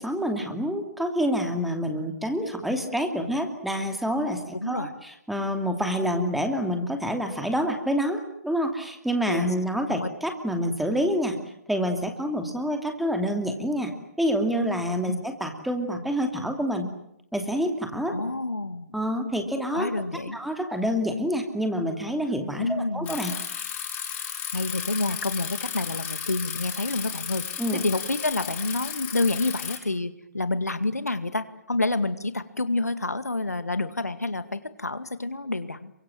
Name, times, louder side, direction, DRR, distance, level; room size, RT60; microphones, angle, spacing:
voice 1, 0.0-11.4 11.7-16.9 17.3-18.1 18.9-19.9 20.3-23.3 27.6-27.8, equal, ahead, 4 dB, 2.6 m, -27 dB
voice 2, 18.1-19.0 19.7-20.4 22.6-23.2 24.5-27.4 27.7-35.9, left 2 dB, 75° left, 11 dB, 2.1 m, -28 dB
Bicycle, 23.1-29.8, left 8 dB, 20° left, 7.0 m, -34 dB
29.0 x 24.5 x 7.6 m, 0.75 s
figure-of-eight pair, 135°, 9 cm